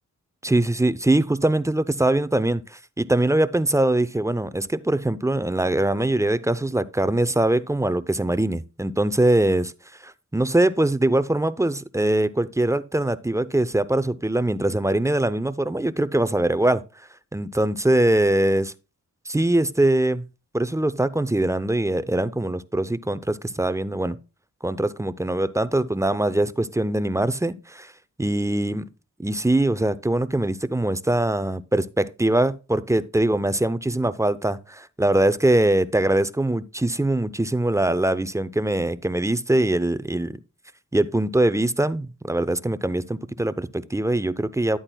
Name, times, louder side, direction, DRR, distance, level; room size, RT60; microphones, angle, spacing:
voice 1, 0.4-9.7 10.3-16.8 17.3-18.7 19.3-20.2 20.5-24.2 24.6-27.9 28.2-28.8 29.2-40.4 40.9-44.8, right 1 dB, 10° right, 0.6 m, -22 dB
11.0 x 8.6 x 2.3 m
cardioid pair, 50°, 34 cm